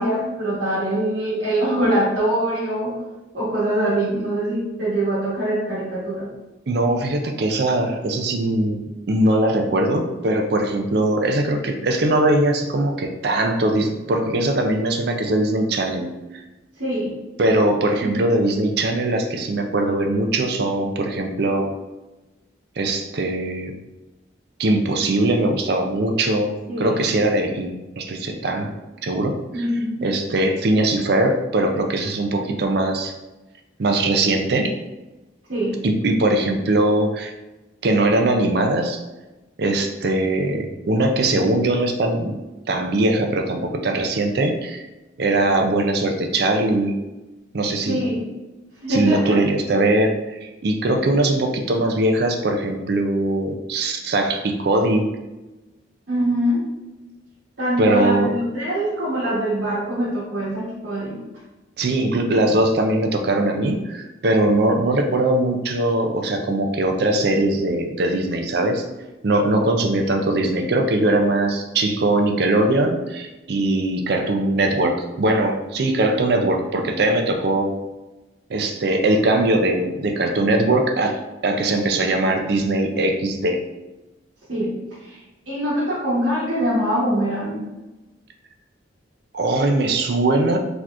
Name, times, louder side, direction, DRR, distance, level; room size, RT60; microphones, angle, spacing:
voice 1, 0.0-2.9 3.3-6.3 16.8-17.1 18.0-18.3 26.7-27.0 29.5-30.0 35.5-35.8 47.9-48.3 48.8-49.4 56.1-56.6 57.6-61.2 84.5-85.2 85.4-87.7, right 1 dB, 80° right, -11 dB, 1.3 m, -23 dB
voice 2, 6.7-16.1 17.4-21.7 22.8-23.7 24.6-28.7 29.0-29.7 30.0-33.1 33.8-34.7 35.8-37.3 37.8-39.0 39.6-42.4 42.7-44.8 45.2-47.0 47.5-48.1 48.9-55.2 57.8-58.3 61.8-68.9 69.2-77.8 78.5-83.6 89.3-90.6, right 2 dB, 55° right, 4 dB, 0.4 m, -21 dB
4.1 x 2.9 x 2.5 m, 1.1 s
head